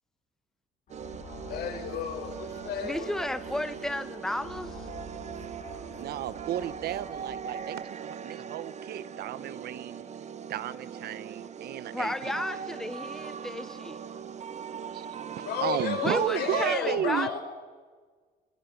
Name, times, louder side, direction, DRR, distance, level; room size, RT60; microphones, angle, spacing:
sound 1, 0.9-7.7, left 2 dB, 50° left, 7.5 m, -48 dB
sound 2, 0.9-16.8, right 7 dB, 40° right, 1.1 m, -40 dB
voice 1, 1.5-3.1 15.4-17.4, left 8 dB, 70° left, 4.8 m, -33 dB
voice 2, 2.8-4.9 11.9-14.0 16.0-17.4, left 1 dB, 5° left, 0.9 m, -33 dB
voice 3, 5.9-10.1 10.5-12.4 14.9-17.3, right 12 dB, 70° right, 1.0 m, -33 dB
26.0 x 22.0 x 5.4 m
cardioid pair, 110°, 17 cm